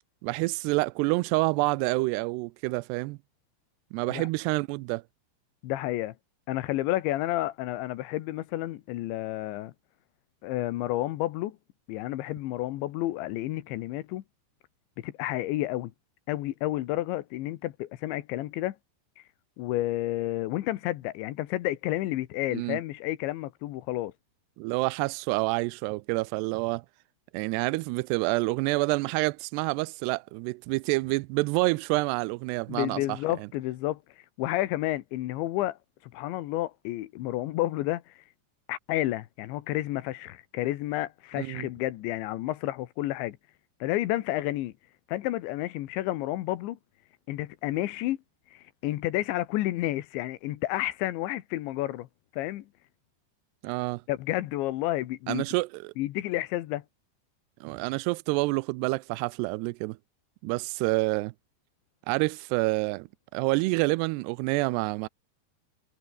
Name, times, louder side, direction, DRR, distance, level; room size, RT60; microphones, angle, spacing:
voice 1, 0.2-3.2 3.9-5.0 22.5-22.8 24.6-26.8 27.3-33.2 41.4-41.7 53.6-54.0 55.3-55.9 57.6-60.0 60.4-61.3 62.1-63.1 63.3-65.1, right 24 dB, 85° right, 2.4 m, -28 dB
voice 2, 5.6-6.1 6.5-9.7 10.4-11.6 11.9-14.2 15.0-15.9 16.3-18.8 19.2-19.3 19.6-24.1 32.7-35.8 36.1-38.2 38.7-43.4 43.8-44.7 45.1-46.8 47.3-48.2 48.5-52.1 52.3-52.6 54.1-55.4 56.0-56.8, left 16 dB, 85° left, 3.5 m, -30 dB
omnidirectional pair, 5.2 m